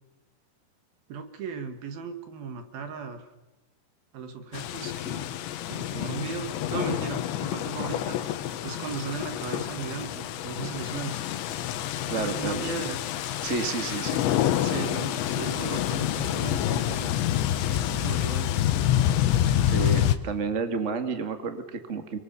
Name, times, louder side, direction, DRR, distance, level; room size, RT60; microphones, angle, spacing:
voice 1, 1.1-3.3 4.1-5.2 5.7-8.2 8.6-11.2 12.0-13.0 14.6-17.1 17.6-18.5, right 5 dB, 60° right, 8 dB, 3.5 m, -36 dB
sound 1, 4.5-20.2, left 11 dB, 85° left, 3.5 m, -27 dB
voice 2, 12.1-12.6 13.4-14.2 19.7-22.2, right 4 dB, 40° right, 7 dB, 1.0 m, -30 dB
30.0 x 22.5 x 7.0 m, 1.0 s
omnidirectional pair, 5.0 m